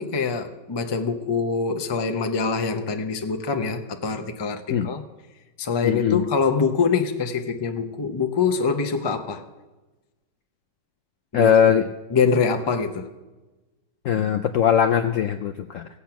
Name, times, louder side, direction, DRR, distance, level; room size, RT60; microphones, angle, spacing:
voice 1, 0.0-5.0 5.6-9.4 11.3-11.5 12.1-13.1, left 5 dB, 35° left, 0.4 m, -24 dB
voice 2, 5.8-6.3 11.3-11.8 14.0-15.9, left 8 dB, 70° left, 0.7 m, -20 dB
16.5 x 8.3 x 5.8 m
omnidirectional pair, 1.8 m